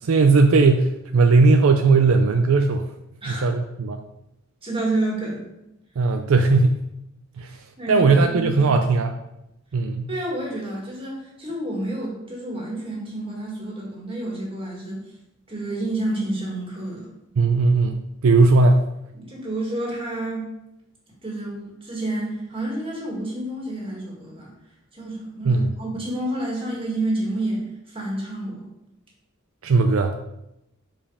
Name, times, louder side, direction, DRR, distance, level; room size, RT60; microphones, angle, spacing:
voice 1, 0.0-2.8 3.3-4.0 6.0-6.8 7.4-7.5 7.9-9.2 9.7-10.1 17.4-18.8 25.4-25.7 29.6-30.1, right 3 dB, 70° right, 5 dB, 0.5 m, -18 dB
voice 2, 4.6-5.4 7.4-8.5 10.1-15.0 15.5-17.1 19.1-20.5 21.2-24.5 24.9-28.7, right 1 dB, 25° right, -3 dB, 1.9 m, -29 dB
5.3 x 5.0 x 4.9 m, 0.87 s
head